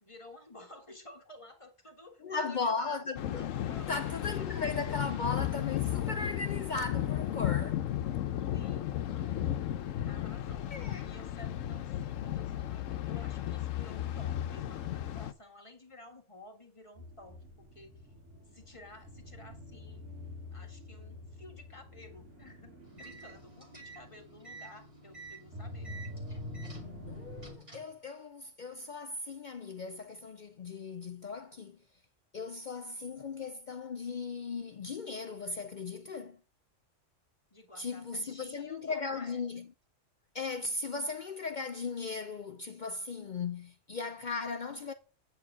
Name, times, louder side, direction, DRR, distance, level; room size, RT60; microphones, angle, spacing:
voice 1, 0.0-3.1 3.6-4.2 8.5-9.5 10.0-17.9 18.5-20.0 20.5-25.9 37.5-39.4, left 1 dB, 25° left, 1.8 m, -53 dB
voice 2, 2.2-3.5 3.9-7.8 10.7-11.1 27.1-31.8 32.3-36.4 37.8-39.7 40.3-44.9, left 4 dB, 55° left, 0.5 m, -37 dB
Thunder, 3.1-15.3, left 11 dB, 85° left, 1.0 m, -34 dB
sound 1, 16.9-27.5, left 1 dB, 65° right, 2.8 m, -47 dB
sound 2, 22.8-28.0, right 3 dB, 25° right, 2.0 m, -51 dB
8.9 x 4.7 x 7.1 m
omnidirectional pair, 1.3 m